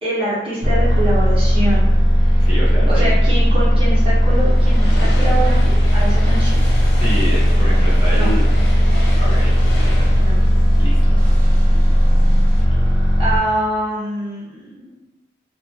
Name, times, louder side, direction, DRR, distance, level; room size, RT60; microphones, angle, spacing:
voice 1, 0.0-2.5 2.9-6.6 8.1-8.4 10.2-10.4 11.1-11.2 11.5-11.8 12.2-12.7 13.2-15.1, right 1 dB, 30° right, -9 dB, 0.9 m, -25 dB
sound 1, 0.6-13.4, equal, 5° left, 0.5 m, -15 dB
voice 2, 2.4-3.0 6.9-8.4 9.2-10.2 10.8-11.1, equal, 30° left, -8 dB, 0.8 m, -28 dB
sound 2, 4.2-11.6, left 1 dB, 75° left, 0.6 m, -33 dB
sound 3, 5.2-12.6, left 1 dB, 55° right, 1.0 m, -33 dB
2.5 x 2.0 x 2.7 m, 0.92 s
head